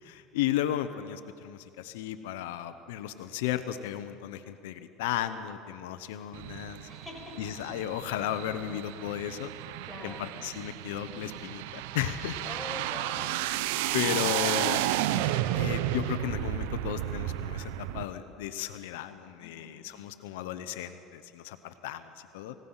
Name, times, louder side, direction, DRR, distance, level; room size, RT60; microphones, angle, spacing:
voice 1, 0.0-6.9 7.4-9.5 10.0-12.4 13.9-14.9 15.5-22.6, left 11 dB, 85° left, 11 dB, 0.9 m, -34 dB
sound 1, 6.3-18.0, right 14 dB, 80° right, 0.8 m, -32 dB
voice 2, 6.9-7.3 9.8-10.2 12.4-13.3 19.4-19.7, left 2 dB, ahead, -1 dB, 6.3 m, -43 dB
28.5 x 17.0 x 5.8 m, 2.5 s
supercardioid pair, 95°, 0 cm